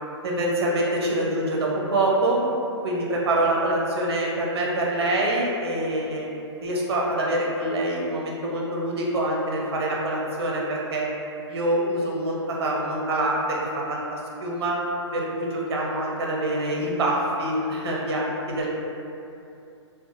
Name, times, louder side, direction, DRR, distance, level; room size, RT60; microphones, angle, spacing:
voice 1, 0.2-2.4 2.8-6.3 6.6-11.1 11.5-14.8 15.1-18.7, right 1 dB, 60° right, -3 dB, 0.6 m, -25 dB
2.7 x 2.1 x 2.6 m, 2.7 s
hypercardioid pair, 165°, 15 cm